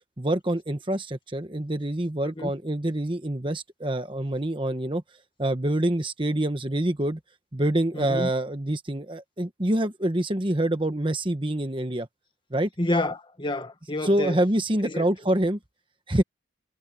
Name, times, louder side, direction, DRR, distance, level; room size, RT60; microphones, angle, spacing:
voice 1, 0.2-5.0 5.4-7.2 7.5-12.1 12.5-12.7 14.0-15.6 16.1-16.2, right 1 dB, 25° right, 1.2 m, -26 dB
voice 2, 7.9-8.3 12.8-14.4 14.8-15.1, left 1 dB, 25° left, 1.8 m, -29 dB
head